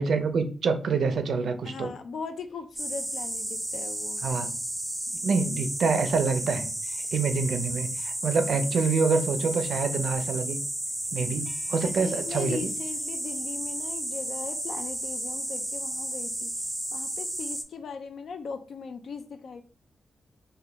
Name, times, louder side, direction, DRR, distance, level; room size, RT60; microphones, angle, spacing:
voice 1, 0.0-1.9 4.2-4.5 5.2-6.7 7.1-10.6 11.1-12.7, right 4 dB, 75° right, 8 dB, 0.4 m, -26 dB
voice 2, 1.7-4.3 11.8-16.5 16.9-19.6, left 5 dB, 75° left, 9 dB, 0.3 m, -39 dB
sound 1, 2.8-17.6, right 1 dB, 10° right, 0.4 m, -33 dB
2.8 x 2.2 x 3.3 m, 0.39 s
wide cardioid pair, 115°, 0 cm